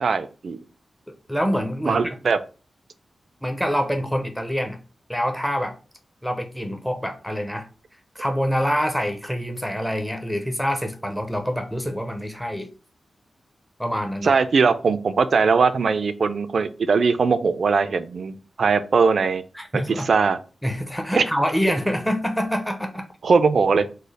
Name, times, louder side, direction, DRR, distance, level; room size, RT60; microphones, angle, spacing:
voice 1, 0.0-0.6 1.9-2.4 14.2-19.4 19.7-20.4 21.2-21.3 23.2-23.9, right 5 dB, 70° right, 0.3 m, -20 dB
voice 2, 1.1-2.2 3.4-4.8 5.1-5.8 6.2-7.7 8.2-12.7 13.8-14.3 19.5-20.1 20.6-23.1, equal, 5° left, 0.5 m, -26 dB
3.1 x 2.0 x 3.9 m
cardioid pair, 70°, 0 cm